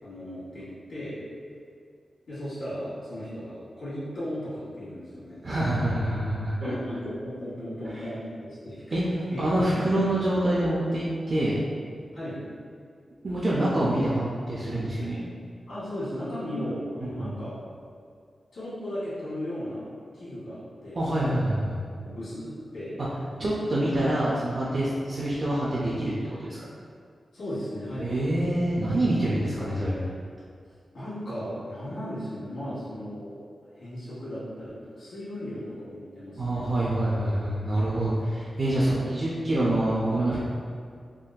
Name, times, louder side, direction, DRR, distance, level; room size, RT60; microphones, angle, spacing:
voice 1, 0.0-1.2 2.3-5.4 6.6-9.0 9.3-9.9 12.1-12.4 15.7-17.6 18.5-19.9 20.1-21.0 22.0-23.0 23.3-23.5 24.1-24.2 24.9-25.0 27.3-28.1 30.9-33.4 33.8-36.7, equal, 80° left, -11 dB, 1.5 m, -36 dB
voice 2, 5.4-6.7 8.9-11.6 13.2-15.2 17.2-17.3 21.0-21.8 23.4-26.1 26.4-26.6 28.0-30.0 36.4-40.4, right 1 dB, 40° right, -7 dB, 0.4 m, -26 dB
3.6 x 2.6 x 2.3 m, 2.2 s
wide cardioid pair, 170°, 0 cm